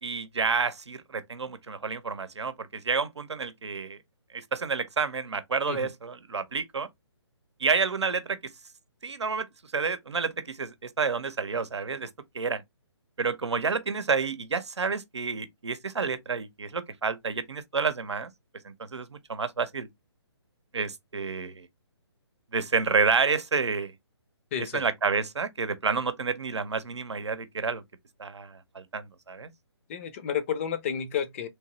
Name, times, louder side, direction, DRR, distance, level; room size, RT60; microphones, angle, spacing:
voice 1, 0.0-4.0 4.3-6.9 7.6-8.4 9.0-12.1 12.3-12.6 13.2-18.3 18.6-19.9 20.7-21.7 22.5-23.9 24.6-27.8 28.2-29.5, right 5 dB, 80° right, 0.7 m, -29 dB
voice 2, 24.5-24.8 29.9-31.5, left 8 dB, 30° left, 0.6 m, -31 dB
3.4 x 2.8 x 3.0 m
figure-of-eight pair, 145°, 14 cm